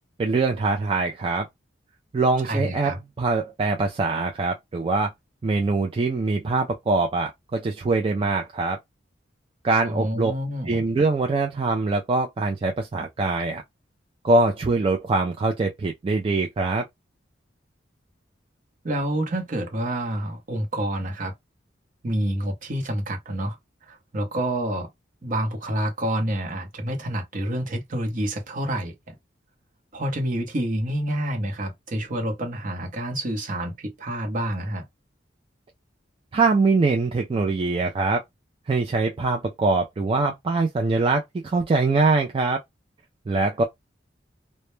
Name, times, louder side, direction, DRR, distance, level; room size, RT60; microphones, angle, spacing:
voice 1, 0.2-1.5 2.1-5.1 5.4-8.8 9.6-10.3 10.7-13.6 14.2-16.8 36.3-38.2 38.7-42.6 43.3-43.6, right 3 dB, 30° right, 0.3 m, -23 dB
voice 2, 2.4-3.0 9.8-10.8 18.8-21.3 22.0-23.6 23.9-24.9 25.2-29.1 29.9-34.8, right 1 dB, 45° right, 0.8 m, -28 dB
2.1 x 2.1 x 3.0 m
head